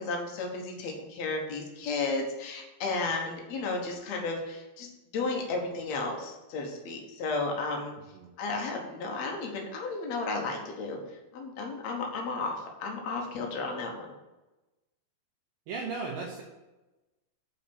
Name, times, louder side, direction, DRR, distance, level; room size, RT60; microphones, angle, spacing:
voice 1, 0.0-4.9 5.1-7.9 8.4-11.0 11.3-14.1, left 3 dB, 70° left, 1 dB, 1.6 m, -33 dB
voice 2, 15.7-16.4, right 4 dB, 70° right, -1 dB, 2.4 m, -35 dB
8.3 x 4.6 x 6.9 m, 1.1 s
omnidirectional pair, 4.9 m